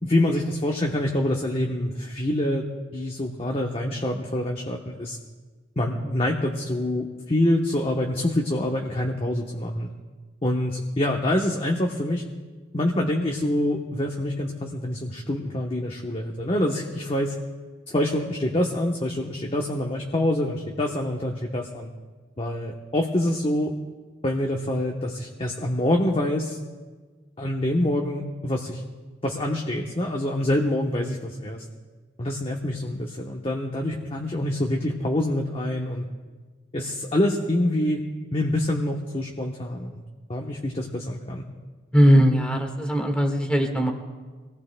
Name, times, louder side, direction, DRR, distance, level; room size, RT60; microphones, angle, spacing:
voice 1, 0.0-2.7 2.9-5.2 5.8-9.9 10.4-12.3 12.7-17.4 17.9-21.9 22.4-23.7 24.2-26.6 27.4-28.8 29.2-31.6 32.2-36.0 36.7-38.0 38.3-40.0 40.3-41.4, left 1 dB, 30° left, 0 dB, 1.0 m, -26 dB
voice 2, 41.9-43.9, equal, 5° left, 2 dB, 1.6 m, -19 dB
25.5 x 18.5 x 2.2 m, 1.4 s
head